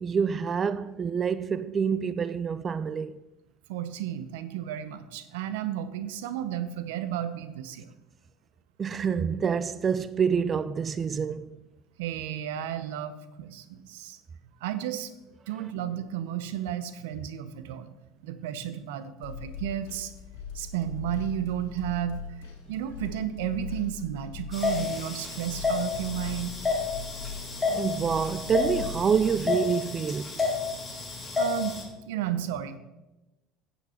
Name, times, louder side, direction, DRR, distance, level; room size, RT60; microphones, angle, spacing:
voice 1, 0.0-3.2 8.8-11.6 27.7-30.3, right 6 dB, 30° right, 0.3 m, -27 dB
voice 2, 3.7-7.8 12.0-14.2 14.6-15.1 15.5-17.9 18.2-20.1 20.5-22.2 22.7-26.5 31.4-31.7 32.1-32.8, right 11 dB, 85° right, 0.8 m, -33 dB
sound 1, 19.2-29.4, left 6 dB, 85° left, 1.7 m, -41 dB
sound 2, 24.5-31.8, left 4 dB, 20° left, 2.7 m, -30 dB
9.2 x 8.1 x 4.4 m
supercardioid pair, 110°, 0 cm